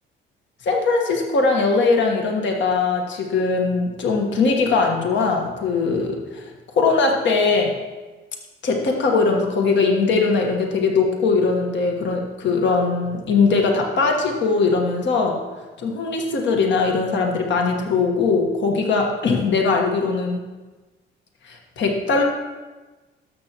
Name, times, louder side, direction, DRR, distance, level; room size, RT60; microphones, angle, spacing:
voice 1, 0.6-6.4 6.8-7.7 8.6-15.4 15.8-20.4 21.5-22.2, left 4 dB, 65° left, 1 dB, 1.4 m, -20 dB
12.5 x 6.9 x 3.0 m, 1.2 s
cardioid pair, 90°, 20 cm